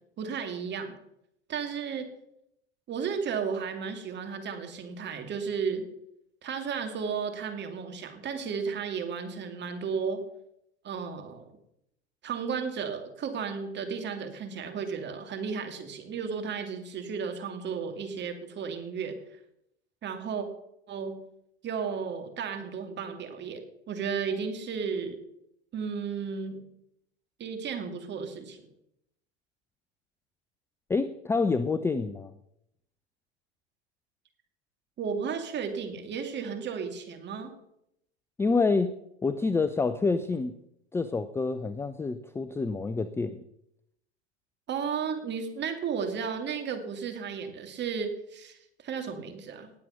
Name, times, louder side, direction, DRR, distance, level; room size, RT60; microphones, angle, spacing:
voice 1, 0.2-0.9 1.5-2.1 2.9-5.8 6.4-10.2 10.8-11.5 12.2-19.2 20.0-20.5 20.9-21.2 21.6-25.2 25.7-26.6 27.4-28.6 35.0-37.5 44.7-49.7, right 6 dB, 30° right, 6 dB, 2.5 m, -34 dB
voice 2, 30.9-32.3 38.4-38.9 39.2-40.5 40.9-43.4, left 4 dB, 5° left, 12 dB, 0.4 m, -27 dB
19.0 x 7.6 x 5.7 m, 0.79 s
hypercardioid pair, 95°, 34 cm